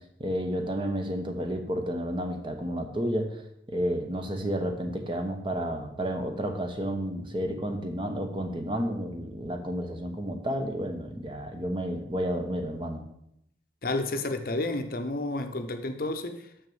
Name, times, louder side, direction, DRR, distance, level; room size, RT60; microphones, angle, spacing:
voice 1, 0.2-3.4 3.7-13.0, equal, 25° right, 1.0 m, -31 dB
voice 2, 13.8-16.4, left 2 dB, 50° left, 0.7 m, -31 dB
6.3 x 6.3 x 7.1 m
head